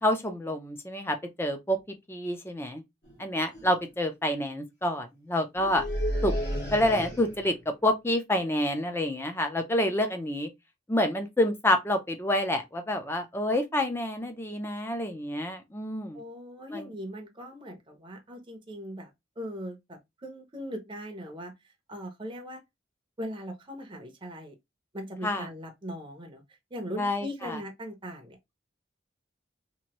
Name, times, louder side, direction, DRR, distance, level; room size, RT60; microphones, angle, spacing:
voice 1, 0.0-1.8 2.1-2.8 3.2-5.8 6.2-6.3 6.7-7.6 7.8-10.5 10.9-16.2 16.7-16.9 25.2-25.5 27.0-27.6, left 1 dB, 10° left, 0.5 m, -28 dB
sound 1, 3.0-3.2 3.5-3.9 5.6-7.6, equal, 60° left, 1.5 m, -32 dB
voice 2, 16.1-19.1 19.4-21.5 21.9-22.6 23.2-24.5 24.9-26.4 26.7-28.5, equal, 25° right, 0.6 m, -39 dB
2.9 x 2.6 x 2.9 m
head